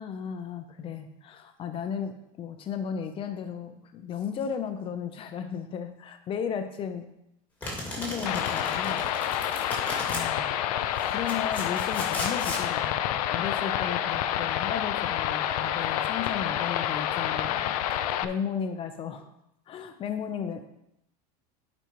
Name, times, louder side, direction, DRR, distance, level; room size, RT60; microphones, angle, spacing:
voice 1, 0.0-7.1 8.0-9.0 10.1-10.6 11.1-19.3 19.7-20.7, left 7 dB, 30° left, 7 dB, 0.8 m, -35 dB
Domestic sounds home sounds, 7.6-10.2 11.0-12.6, left 1 dB, 10° left, 2.2 m, -36 dB
sound 1, 8.3-18.3, left 11 dB, 85° left, 0.6 m, -28 dB
11.5 x 5.4 x 3.1 m, 0.82 s
supercardioid pair, 150°, 19 cm